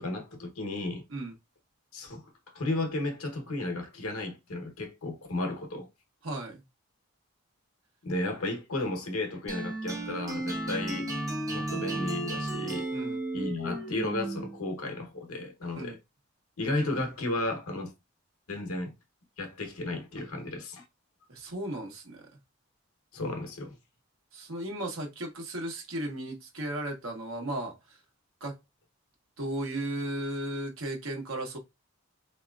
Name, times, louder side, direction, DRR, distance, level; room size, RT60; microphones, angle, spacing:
voice 1, 0.0-1.0 1.9-5.9 8.0-11.1 11.5-12.9 13.3-16.0 16.6-17.9 18.5-18.9 19.4-20.8 23.1-23.8, left 2 dB, 90° left, 0.9 m, -33 dB
voice 2, 6.2-6.6 12.9-13.2 15.7-15.9 21.3-22.3 24.3-28.0 28.4-28.6 29.4-31.6, right 1 dB, 70° right, 1.2 m, -35 dB
sound 1, 9.5-14.6, right 2 dB, 15° right, 0.8 m, -34 dB
3.6 x 2.9 x 2.3 m
head